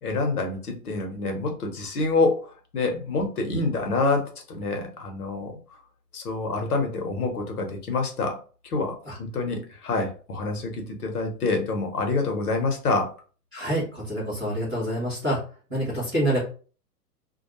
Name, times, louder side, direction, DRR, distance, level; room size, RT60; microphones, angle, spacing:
voice 1, 0.0-5.6 6.1-8.4 8.6-13.1, left 3 dB, 65° left, 3 dB, 1.0 m, -27 dB
voice 2, 13.5-15.4 15.7-16.4, right 1 dB, 5° right, -16 dB, 0.3 m, -27 dB
2.3 x 2.3 x 2.9 m, 0.38 s
figure-of-eight pair, 115°, 48 cm